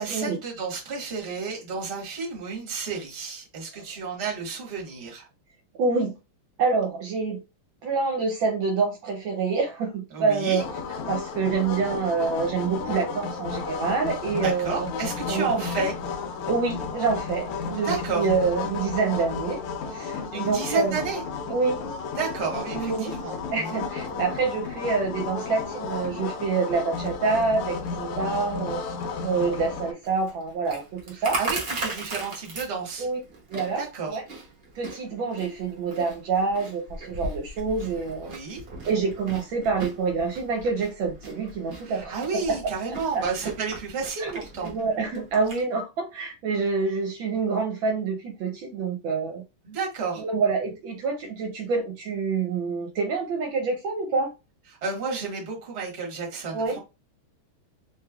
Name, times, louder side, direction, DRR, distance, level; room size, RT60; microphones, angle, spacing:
voice 1, 0.0-5.3 10.1-10.6 14.4-15.9 17.8-18.3 20.3-21.2 22.1-23.8 31.2-33.1 33.8-34.2 38.2-38.6 41.8-44.7 49.6-50.2 54.8-56.8, right 4 dB, 40° right, -1 dB, 1.1 m, -31 dB
voice 2, 5.8-6.1 6.6-7.4 7.8-10.6 11.1-14.9 15.3-15.5 16.5-19.6 19.9-21.0 21.5-21.8 22.7-23.1 23.5-28.8 29.2-31.4 33.0-33.2 33.5-34.2 34.8-38.3 38.8-42.6 43.1-43.2 44.2-49.4 50.2-54.3 56.5-56.8, right 4 dB, 75° right, 2 dB, 1.3 m, -27 dB
sound 1, 10.6-29.9, left 5 dB, 85° left, 1.6 m, -33 dB
Chewing mastication, 30.0-45.6, right 2 dB, 55° right, 0.6 m, -38 dB
3.4 x 3.2 x 2.3 m, 0.27 s
omnidirectional pair, 2.4 m